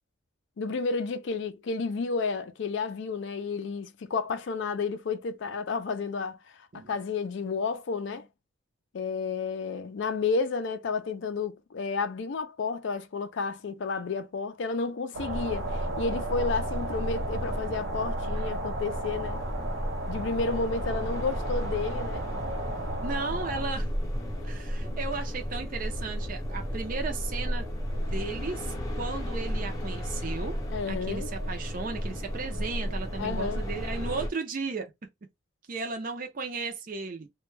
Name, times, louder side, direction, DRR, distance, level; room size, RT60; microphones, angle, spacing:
voice 1, 0.6-6.4 6.7-8.3 8.9-19.4 20.1-22.2 30.7-31.3 33.2-33.6, left 4 dB, 60° left, 0.4 m, -31 dB
sound 1, 15.1-23.6, right 2 dB, 85° right, 0.8 m, -35 dB
sound 2, 15.3-34.3, equal, 15° left, 0.7 m, -33 dB
voice 2, 23.0-23.9 24.4-27.7 28.1-30.6 30.9-34.9 35.7-37.3, right 4 dB, 40° right, 0.5 m, -35 dB
2.2 x 2.1 x 3.1 m
head